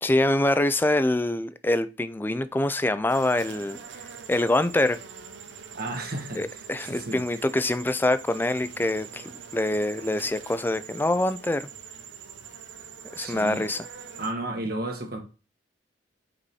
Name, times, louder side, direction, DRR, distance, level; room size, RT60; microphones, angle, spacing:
voice 1, 0.0-3.8 4.3-5.0 6.4-11.7 13.2-13.8, left 1 dB, 10° left, 0.4 m, -25 dB
sound 1, 3.1-14.3, right 6 dB, 85° right, 0.7 m, -43 dB
voice 2, 5.7-7.4 13.2-13.7 14.2-15.2, right 2 dB, 55° right, 1.5 m, -33 dB
5.2 x 4.7 x 4.2 m
head